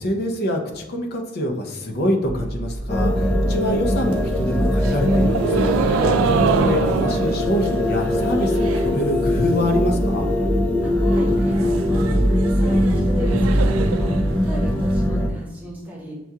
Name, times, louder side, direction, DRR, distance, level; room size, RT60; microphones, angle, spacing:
voice 1, 0.0-10.3, equal, 50° left, 2 dB, 0.6 m, -25 dB
sound 1, 2.2-13.7, right 1 dB, 35° right, 0.6 m, -31 dB
sound 2, 2.9-15.3, left 1 dB, 5° left, 0.3 m, -21 dB
sound 3, 4.0-9.0 9.3-9.8 10.2-10.3 10.5-10.6 10.9-14.9, right 5 dB, 80° right, 0.3 m, -26 dB
voice 2, 10.8-16.2, left 1 dB, 10° right, -4 dB, 0.9 m, -36 dB
6.1 x 2.3 x 2.7 m, 1.0 s
head